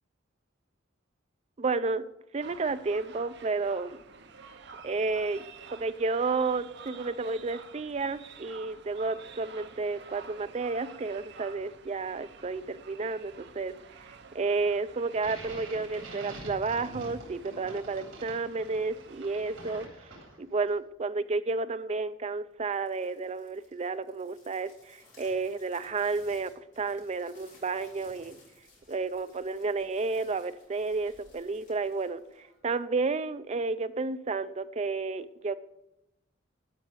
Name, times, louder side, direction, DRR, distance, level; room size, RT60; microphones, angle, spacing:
voice 1, 1.6-2.1 2.3-4.0 4.8-5.4 5.7-13.7 14.0-20.1 20.4-28.4 28.9-35.6, right 3 dB, 35° right, 13 dB, 0.5 m, -31 dB
sound 1, 2.4-19.9, right 5 dB, 60° right, 0.8 m, -50 dB
sound 2, 15.1-20.6, right 2 dB, 80° right, 3.6 m, -46 dB
sound 3, 22.6-32.9, left 2 dB, 40° left, 3.9 m, -60 dB
12.0 x 6.0 x 6.4 m, 0.87 s
head